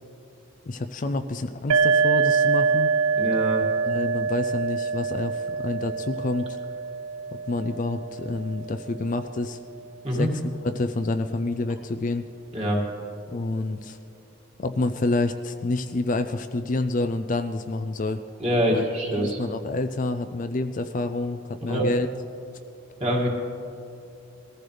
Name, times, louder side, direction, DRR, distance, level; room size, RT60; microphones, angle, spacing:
voice 1, 0.7-2.9 3.8-6.6 7.5-9.6 10.1-10.3 10.6-12.3 13.3-14.0 14.6-18.2 18.7-22.1, left 2 dB, 35° left, 8 dB, 0.4 m, -28 dB
sound 1, 1.7-9.2, right 5 dB, 70° right, 0.3 m, -25 dB
voice 2, 3.2-3.6 10.0-10.3 12.5-12.8 18.4-19.4 21.7-21.8 23.0-23.3, equal, 30° right, -2 dB, 2.3 m, -24 dB
21.5 x 14.5 x 3.4 m, 2.7 s
head